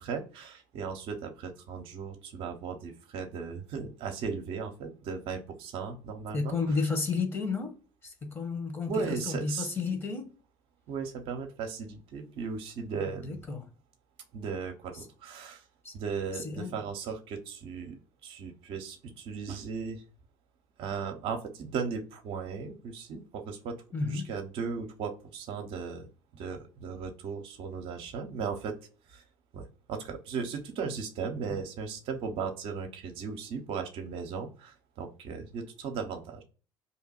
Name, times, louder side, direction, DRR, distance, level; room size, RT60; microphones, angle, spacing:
voice 1, 0.0-6.6 8.9-9.7 10.9-13.4 14.3-15.6 15.9-18.0 18.2-20.0 20.8-26.1 26.3-28.8 29.1-29.2 29.5-36.4, right 5 dB, 60° right, 0.7 m, -37 dB
voice 2, 6.3-7.7 8.0-10.3 13.2-13.7 15.8-15.9 16.3-16.8 23.9-24.3 31.5-31.6, left 4 dB, 20° left, 1.2 m, -32 dB
2.9 x 2.2 x 4.2 m
hypercardioid pair, 65°, 11 cm